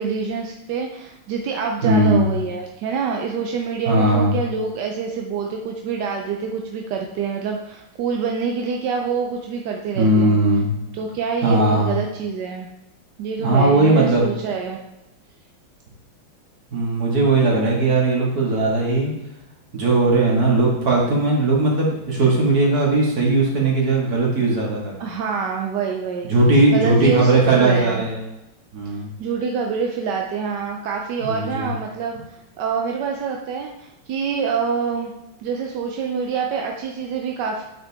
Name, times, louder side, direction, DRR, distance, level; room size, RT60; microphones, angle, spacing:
voice 1, 0.0-10.4 10.9-12.7 13.2-14.8 25.0-26.3 26.7-28.0 28.9-35.1 35.4-37.6, right 6 dB, 70° right, 2 dB, 1.1 m, -26 dB
voice 2, 1.8-2.3 3.9-4.4 10.0-10.7 11.4-11.9 13.4-14.3 16.7-19.1 19.7-24.9 26.2-28.2 28.7-29.1 31.2-31.7, right 2 dB, 45° right, -2 dB, 2.2 m, -18 dB
8.8 x 5.6 x 3.5 m, 0.95 s
omnidirectional pair, 2.3 m